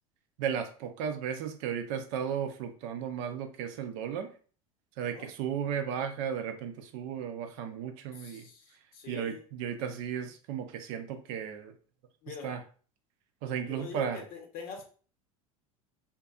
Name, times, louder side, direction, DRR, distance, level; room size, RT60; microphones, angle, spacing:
voice 1, 0.4-4.3 5.0-8.5 9.1-11.7 12.3-12.6 13.4-14.2, right 8 dB, 60° right, 8 dB, 0.5 m, -35 dB
voice 2, 8.1-8.7 8.9-9.4 12.2-12.5 13.7-14.8, left 5 dB, 50° left, 3 dB, 0.8 m, -44 dB
2.6 x 2.4 x 2.3 m, 0.40 s
hypercardioid pair, 85°, 18 cm